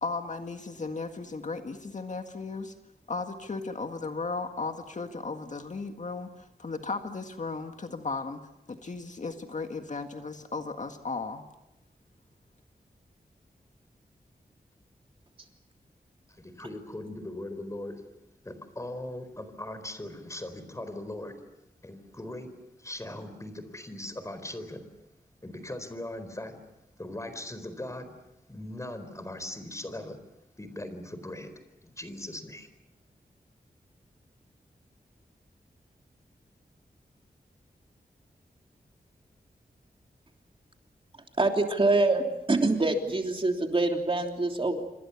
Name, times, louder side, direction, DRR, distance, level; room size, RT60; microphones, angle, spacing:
voice 1, 0.0-2.7 3.1-8.4 8.7-11.4, left 3 dB, 50° left, 5 dB, 1.8 m, -35 dB
voice 2, 16.3-18.0 18.4-21.4 21.8-24.9 25.4-26.6 27.0-28.1 28.5-30.2 30.6-31.5 31.8-32.7, left 1 dB, 20° left, 10 dB, 4.2 m, -39 dB
voice 3, 41.4-44.8, right 2 dB, 35° right, 3 dB, 3.2 m, -25 dB
27.5 x 25.5 x 7.1 m, 0.88 s
wide cardioid pair, 125°, 16 cm